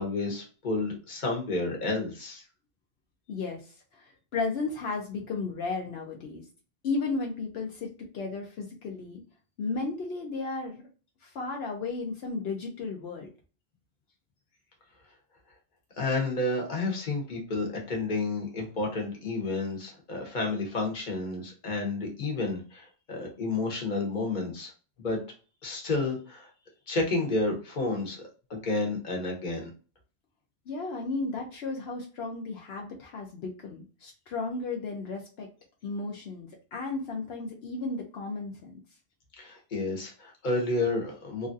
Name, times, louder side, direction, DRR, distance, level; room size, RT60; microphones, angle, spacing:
voice 1, 0.0-2.4 16.0-24.7 25.0-25.2 25.6-26.5 26.9-28.2 28.5-29.7 39.4-41.5, left 2 dB, 50° left, 0 dB, 1.1 m, -30 dB
voice 2, 3.3-6.4 6.8-9.2 9.6-10.8 11.2-13.3 30.7-35.5 35.8-38.7, left 3 dB, 75° left, 0 dB, 0.9 m, -34 dB
3.0 x 2.5 x 2.5 m, 0.36 s
omnidirectional pair, 1.0 m